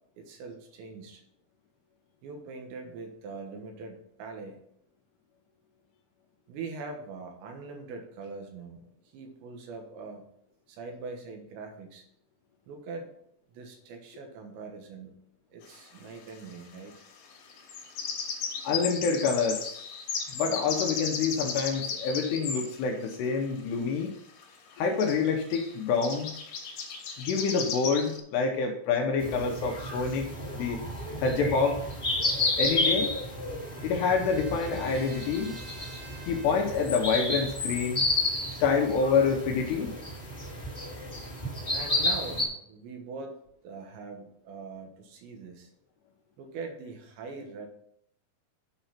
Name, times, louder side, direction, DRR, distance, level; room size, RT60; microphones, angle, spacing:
voice 1, 0.2-1.2 2.2-4.6 6.5-10.2 10.7-12.0 12.7-13.2 13.5-15.1 15.5-17.1 27.5-27.7 41.7-43.4 43.6-45.7 46.4-47.7, right 4 dB, 75° right, 3 dB, 3.4 m, -42 dB
sound 1, 15.6-15.7 17.5-22.7 24.4-24.5 24.7-24.8 25.0-25.2 25.5-25.7 26.0-28.2, left 6 dB, 60° left, 2.7 m, -35 dB
voice 2, 18.6-19.9 20.3-24.1 24.8-26.3 27.2-30.3 30.5-30.8 31.2-31.8 32.6-33.1 33.8-35.6 36.3-38.0 38.6-40.0, left 5 dB, 75° left, 2 dB, 2.7 m, -27 dB
sound 2, 29.2-42.4, left 2 dB, 25° left, 1.3 m, -31 dB
Trumpet, 32.5-36.8, right 4 dB, 55° right, 3.4 m, -50 dB
9.1 x 5.3 x 5.8 m, 0.70 s
omnidirectional pair, 5.5 m